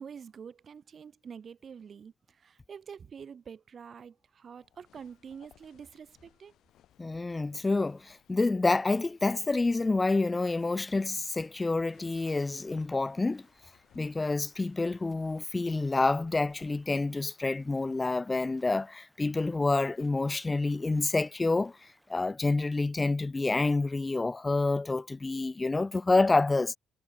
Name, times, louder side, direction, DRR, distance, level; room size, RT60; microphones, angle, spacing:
voice 1, 0.0-6.5, right 7 dB, 50° right, 0.5 m, -47 dB
sound 1, 4.6-18.0, left 12 dB, 75° left, 3.5 m, -65 dB
voice 2, 7.0-13.4 14.0-21.7 22.1-26.8, left 3 dB, 20° left, 0.3 m, -28 dB
Stream, 10.2-22.2, equal, ahead, 4.6 m, -66 dB
cardioid pair, 85°, 0 cm